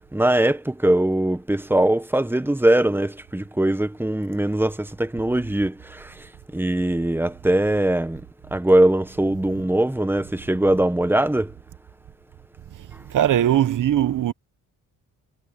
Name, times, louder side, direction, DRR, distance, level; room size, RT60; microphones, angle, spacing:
voice 1, 0.1-8.2 8.5-11.5, right 1 dB, 5° right, 1.1 m, -21 dB
voice 2, 13.0-14.3, right 11 dB, 60° right, 1.2 m, -20 dB
cardioid pair, 90°, 35 cm